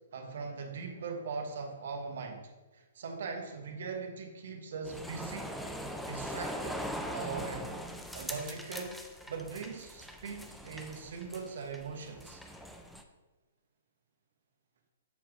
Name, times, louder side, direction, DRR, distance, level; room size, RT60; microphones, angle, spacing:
voice 1, 0.1-5.6 6.1-6.8 7.1-7.7 8.1-9.0 9.3-12.4, right 4 dB, 65° right, 4 dB, 1.0 m, -40 dB
sound 1, 4.8-13.0, equal, ahead, 0.3 m, -41 dB
7.0 x 3.1 x 4.7 m, 1.2 s
hypercardioid pair, 150°, 0 cm